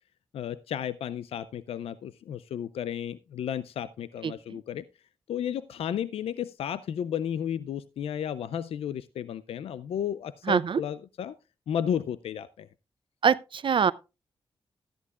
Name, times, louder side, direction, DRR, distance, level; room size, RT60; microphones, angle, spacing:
voice 1, 0.3-4.8 5.3-11.4 11.7-12.7, left 9 dB, 85° left, 0.4 m, -33 dB
voice 2, 10.5-10.8 13.2-13.9, right 6 dB, 60° right, 0.5 m, -23 dB
13.5 x 11.0 x 2.3 m
cardioid pair, 50°, 10 cm